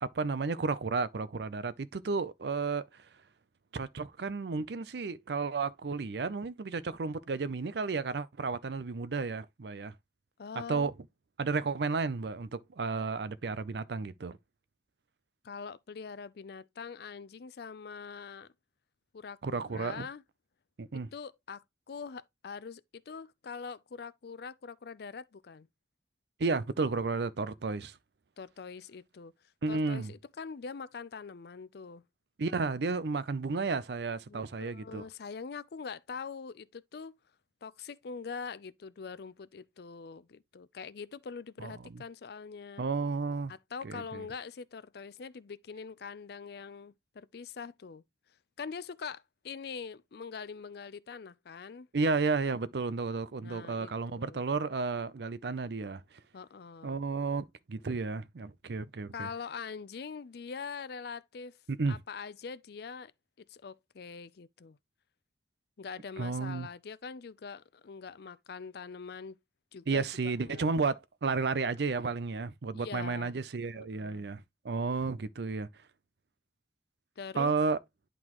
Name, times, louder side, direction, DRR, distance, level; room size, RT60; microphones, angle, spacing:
voice 1, 0.0-2.9 3.7-9.9 10.7-10.9 11.4-14.4 19.4-20.1 20.8-21.1 26.4-28.0 29.6-30.1 32.4-35.0 41.6-42.0 42.8-43.5 43.8-44.2 51.9-56.0 56.8-59.3 61.7-62.0 66.2-66.7 69.9-75.7 77.4-77.8, right 4 dB, 65° right, 0.5 m, -32 dB
voice 2, 10.4-10.9 15.4-18.5 19.1-20.2 21.1-25.7 28.4-29.3 29.7-32.0 34.3-37.2 37.6-42.8 43.5-48.0 48.6-51.9 53.4-54.4 56.3-57.0 59.1-61.6 61.9-63.1 63.5-64.8 65.8-69.4 69.7-70.8 72.7-73.3 73.7-74.3 77.2-77.5, left 5 dB, 60° left, 0.5 m, -43 dB
11.0 x 3.9 x 3.0 m
head